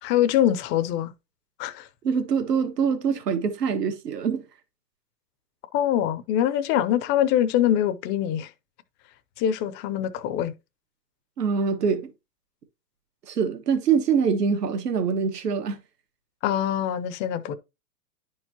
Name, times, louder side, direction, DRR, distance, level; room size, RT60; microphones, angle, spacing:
voice 1, 0.0-1.1 1.6-1.9 5.7-8.5 9.4-10.5 16.4-17.5, left 11 dB, 25° left, 0.5 m, -24 dB
voice 2, 2.0-4.4 11.4-12.1 13.3-15.8, right 6 dB, 85° right, 1.5 m, -24 dB
10.5 x 4.6 x 2.8 m
hypercardioid pair, 125°, 47 cm